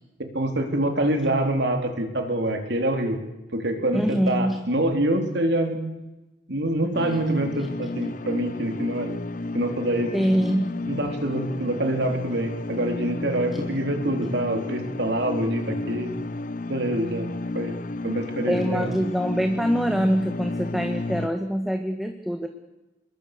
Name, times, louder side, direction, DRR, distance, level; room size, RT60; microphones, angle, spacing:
voice 1, 0.2-3.2 3.5-5.8 6.5-9.2 9.5-10.2 10.9-16.1 16.7-17.3 17.5-17.8 18.0-18.9, right 1 dB, 60° right, 5 dB, 3.8 m, -25 dB
voice 2, 3.9-4.6 10.1-10.7 18.5-22.5, equal, ahead, 5 dB, 1.5 m, -24 dB
sound 1, 6.9-21.3, left 2 dB, 45° left, 0.8 m, -33 dB
27.5 x 22.0 x 6.8 m, 1.0 s
head